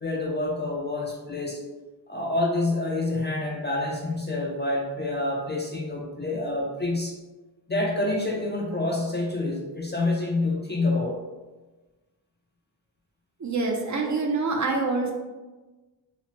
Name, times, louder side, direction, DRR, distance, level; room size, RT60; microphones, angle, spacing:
voice 1, 0.0-1.6 2.1-7.2 7.7-11.2, left 2 dB, 25° left, -2 dB, 0.3 m, -27 dB
voice 2, 13.4-15.1, right 3 dB, 40° right, 0 dB, 0.4 m, -26 dB
2.9 x 2.0 x 2.8 m, 1.2 s
wide cardioid pair, 85°, 45 cm